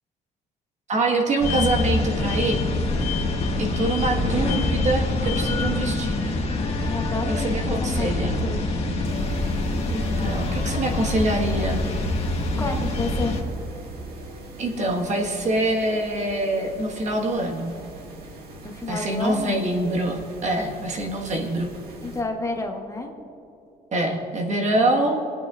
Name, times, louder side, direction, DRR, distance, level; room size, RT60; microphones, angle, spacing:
voice 1, 0.9-2.6 3.6-6.4 7.4-8.4 9.9-11.8 14.6-17.7 18.9-21.7 23.9-25.2, right 2 dB, 45° right, 1 dB, 1.5 m, -25 dB
sound 1, 1.4-13.4, left 2 dB, 40° left, 1.7 m, -25 dB
voice 2, 6.8-8.6 12.6-13.3 18.6-19.6 22.0-23.1, left 2 dB, 20° left, 2 dB, 1.0 m, -30 dB
sound 2, 9.0-22.2, right 2 dB, 65° right, 1.8 m, -42 dB
20.0 x 9.0 x 2.5 m, 2.8 s
cardioid pair, 110°, 17 cm